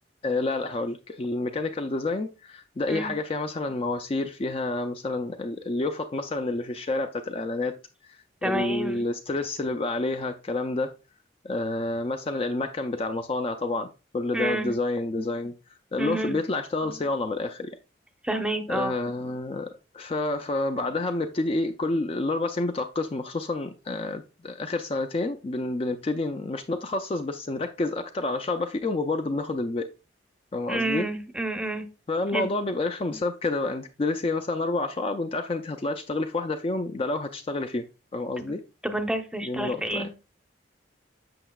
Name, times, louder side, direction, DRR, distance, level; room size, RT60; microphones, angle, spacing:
voice 1, 0.2-7.8 8.0-10.9 11.4-15.5 15.9-17.8 18.7-29.9 30.5-31.1 32.1-37.9 38.1-38.6 39.4-40.1, left 2 dB, 30° left, 0.4 m, -29 dB
voice 2, 8.4-9.0 14.3-14.7 16.0-16.3 18.2-19.0 30.7-31.9 32.3-32.5 38.4-38.5 38.8-40.1, right 1 dB, 5° right, 0.7 m, -29 dB
7.7 x 6.2 x 2.3 m
head